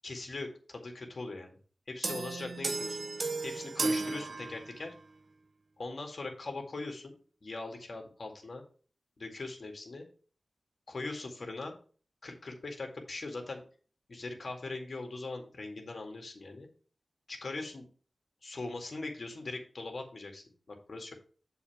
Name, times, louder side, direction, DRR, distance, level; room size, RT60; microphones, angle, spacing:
voice 1, 0.0-1.6 1.9-3.0 3.4-4.9 5.8-7.1 7.4-8.6 9.2-10.0 10.9-11.7 12.2-13.6 14.1-16.7 17.3-17.9 18.4-21.1, left 3 dB, 65° left, 3 dB, 2.0 m, -41 dB
sound 1, 2.0-5.0, right 3 dB, 65° right, 0.7 m, -34 dB
7.2 x 4.2 x 5.8 m, 0.40 s
cardioid pair, 45°, 0 cm